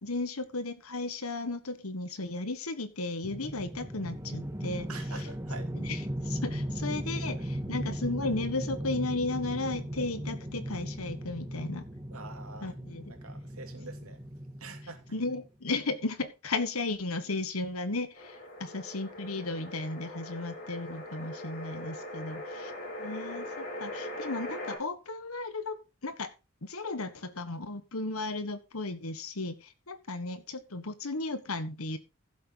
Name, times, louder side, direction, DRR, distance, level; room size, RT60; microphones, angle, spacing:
voice 1, 0.0-4.9 5.7-11.8 12.6-13.1 15.1-22.7 23.0-26.3 26.6-32.0, left 3 dB, 75° left, 1.5 m, -35 dB
sound 1, 3.2-15.5, equal, 15° right, 2.0 m, -37 dB
voice 2, 4.9-5.7 12.1-12.7 13.1-14.2 14.6-15.1, right 3 dB, 80° right, 2.7 m, -45 dB
sound 2, 18.1-24.8, left 1 dB, 45° left, 5.0 m, -41 dB
15.0 x 7.7 x 4.0 m
head